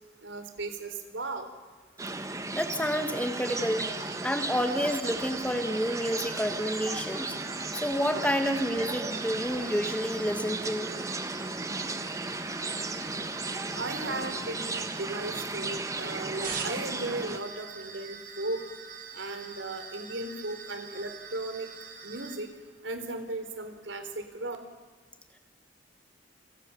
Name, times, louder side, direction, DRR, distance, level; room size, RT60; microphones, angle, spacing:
voice 1, 0.2-1.4 13.8-18.6 19.1-21.7 22.0-22.5 22.8-24.6, right 2 dB, 80° right, 7 dB, 4.2 m, -36 dB
sound 1, 2.0-17.4, right 3 dB, 15° right, 1.5 m, -35 dB
voice 2, 2.5-3.9 4.2-7.4 7.7-10.9, equal, 5° left, 7 dB, 1.8 m, -29 dB
sound 2, 3.5-22.4, right 6 dB, 50° right, 4.4 m, -45 dB
29.5 x 26.0 x 7.3 m, 1.4 s
head